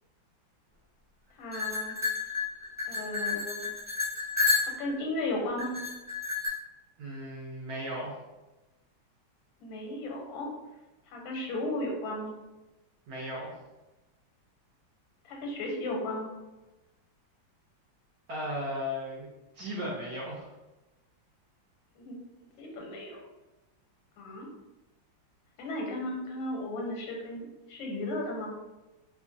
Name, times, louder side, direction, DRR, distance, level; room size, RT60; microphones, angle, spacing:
voice 1, 1.4-2.0 2.9-3.7 4.6-5.7 9.6-10.5 11.1-12.3 15.2-16.3 22.0-22.2 22.6-23.2 24.2-24.5 25.6-28.5, left 1 dB, 85° left, 0 dB, 1.4 m, -35 dB
sound 1, 1.5-5.0 5.6-6.5, left 4 dB, 5° left, 0.8 m, -30 dB
voice 2, 7.0-8.1 13.1-13.5 18.3-19.3 19.5-20.5, equal, 70° right, -5 dB, 1.0 m, -36 dB
3.0 x 2.3 x 2.5 m, 1.0 s
omnidirectional pair, 2.1 m